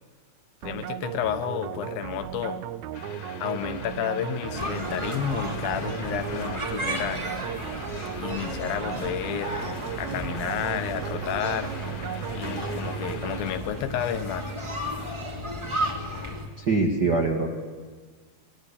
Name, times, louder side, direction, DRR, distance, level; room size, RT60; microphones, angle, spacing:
voice 1, 0.6-2.6 3.4-7.2 8.2-9.6 10.0-11.7 12.3-14.5, left 10 dB, 80° left, 9 dB, 2.8 m, -31 dB
sound 1, 0.6-13.9, right 10 dB, 80° right, 1.6 m, -36 dB
sound 2, 2.9-13.6, left 5 dB, 50° left, 2.3 m, -42 dB
sound 3, 4.5-16.5, right 1 dB, 10° right, 1.5 m, -34 dB
voice 2, 16.6-17.5, right 3 dB, 50° right, 0 dB, 1.2 m, -23 dB
21.5 x 20.5 x 8.5 m, 1.5 s
omnidirectional pair, 4.2 m